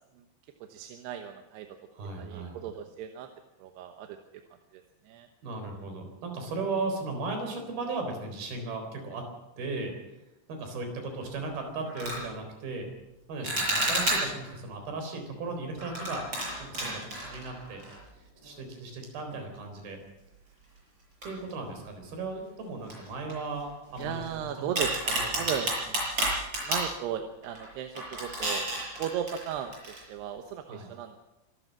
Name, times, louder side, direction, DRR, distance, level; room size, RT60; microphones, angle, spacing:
voice 1, 0.7-1.7 2.2-3.3 3.6-4.2 4.7-5.3 24.0-26.0 26.6-28.7 29.0-31.1, right 9 dB, 70° right, 6 dB, 3.0 m, -36 dB
voice 2, 1.9-2.6 5.4-9.3 9.6-10.2 10.5-12.9 13.3-16.2 16.6-17.8 18.1-20.0 21.2-24.7 25.1-25.5 30.7-30.9, right 3 dB, 55° right, 5 dB, 5.7 m, -36 dB
sound 1, 11.2-11.4 11.8-12.2 13.4-14.5 15.8-18.2 18.4-18.6 19.3-19.4 21.2-21.9 22.2-22.3 22.9-24.3 24.8-26.9 27.4-27.7 28.0-30.0, right 1 dB, 25° right, 7.9 m, -31 dB
25.0 x 13.5 x 7.6 m, 0.96 s
omnidirectional pair, 5.3 m